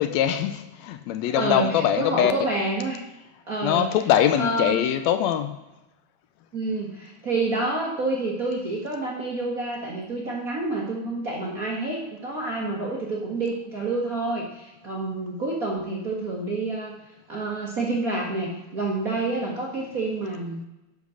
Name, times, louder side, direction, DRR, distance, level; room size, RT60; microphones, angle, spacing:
voice 1, 0.0-2.3 3.6-5.6, left 10 dB, 80° left, 1.7 m, -22 dB
voice 2, 1.3-3.0 3.5-3.9 4.3-4.9 6.5-16.9 17.3-20.6, right 2 dB, 45° right, 1.1 m, -28 dB
10.5 x 5.1 x 6.3 m
omnidirectional pair, 3.3 m